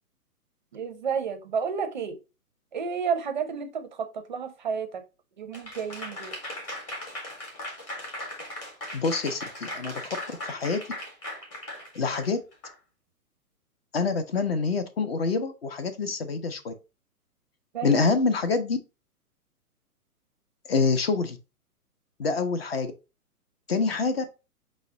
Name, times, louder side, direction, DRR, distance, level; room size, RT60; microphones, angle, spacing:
voice 1, 0.7-2.2 2.7-5.0 5.4-6.4 17.7-18.0, right 6 dB, 30° right, 7 dB, 0.5 m, -31 dB
Applause / Crowd, 5.5-12.7, left 1 dB, 15° left, 0.8 m, -38 dB
voice 2, 8.9-10.2 10.4-10.8 11.9-12.4 13.9-16.7 17.8-18.8 20.7-21.4 22.2-22.9 23.7-24.2, left 4 dB, 40° left, 10 dB, 0.5 m, -26 dB
5.5 x 2.1 x 3.5 m, 0.29 s
figure-of-eight pair, 120°, 46 cm